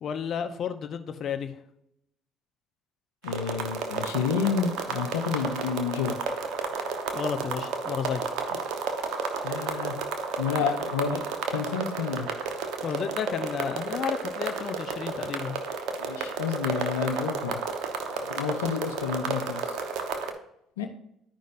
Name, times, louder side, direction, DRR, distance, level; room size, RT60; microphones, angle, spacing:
voice 1, 0.0-1.6 7.1-8.2 10.6-10.7 12.8-15.6, left 7 dB, 55° left, 8 dB, 0.8 m, -32 dB
voice 2, 3.2-6.4 9.4-9.9 10.4-11.2 11.5-12.3 16.0-17.6 18.3-19.8 20.8-20.9, left 6 dB, 90° left, 5 dB, 0.7 m, -30 dB
sound 1, 3.2-20.3, right 4 dB, 70° right, 1.1 m, -32 dB
13.0 x 5.2 x 2.6 m, 0.77 s
hypercardioid pair, 65°, 0 cm